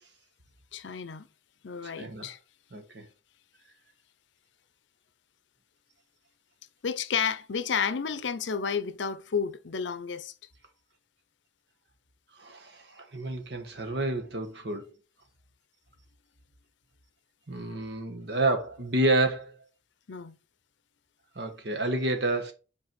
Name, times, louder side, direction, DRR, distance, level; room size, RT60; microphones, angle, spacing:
voice 1, 0.7-1.3 1.6-2.4 6.8-10.3 20.1-20.4, left 6 dB, 75° left, 0.6 m, -31 dB
voice 2, 1.8-2.3 2.7-3.0 12.4-14.9 17.5-19.6 21.3-22.5, right 2 dB, 65° right, 1.3 m, -29 dB
5.3 x 4.7 x 5.1 m
head